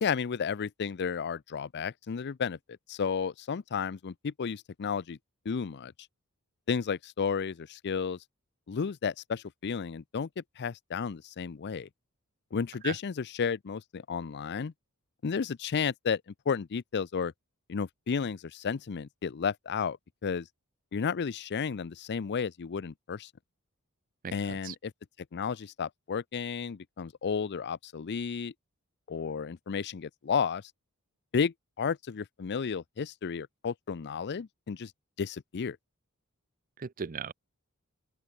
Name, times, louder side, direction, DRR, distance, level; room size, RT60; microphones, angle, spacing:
voice 1, 0.0-2.6 2.9-5.2 5.5-5.9 6.7-8.2 8.7-11.9 12.5-14.7 15.2-16.2 16.5-17.3 17.7-20.0 20.2-20.5 20.9-23.3 24.3-24.9 25.3-28.5 29.1-30.7 31.3-34.9 35.2-35.8, left 6 dB, 50° left, 0.5 m, -32 dB
voice 2, 24.2-24.7 36.8-37.3, right 6 dB, 40° right, 0.5 m, -37 dB
open air
head